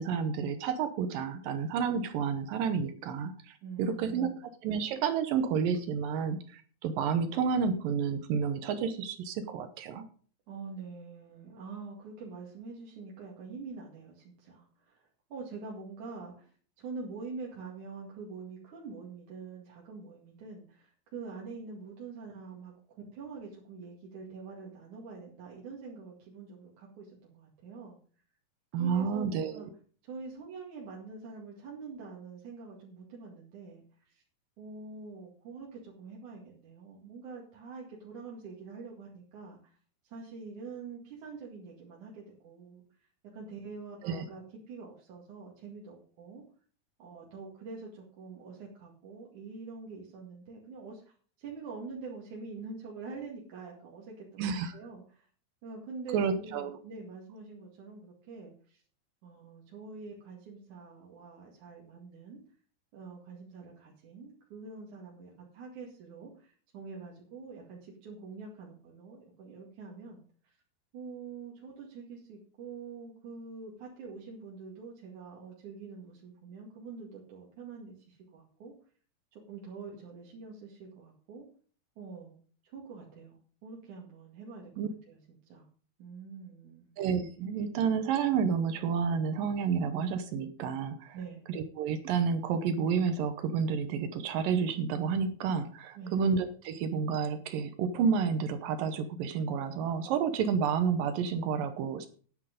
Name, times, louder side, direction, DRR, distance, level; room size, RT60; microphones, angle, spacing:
voice 1, 0.0-4.3 4.6-10.1 28.7-29.7 44.0-44.3 54.4-54.8 56.1-56.8 84.8-84.9 87.0-91.2 91.5-102.1, right 6 dB, 75° right, 10 dB, 2.4 m, -30 dB
voice 2, 3.6-4.4 10.5-22.7 23.1-28.0 28.7-29.7 30.0-34.2 34.6-39.8 40.0-42.8 43.3-46.4 47.0-55.3 55.6-58.8 59.2-62.4 62.9-70.6 70.9-78.7 79.3-81.5 82.0-85.2 85.5-85.6 86.0-86.9 91.1-91.4 95.9-96.2, right 4 dB, 55° right, -3 dB, 3.3 m, -45 dB
10.0 x 9.2 x 5.1 m, 0.43 s
omnidirectional pair, 4.3 m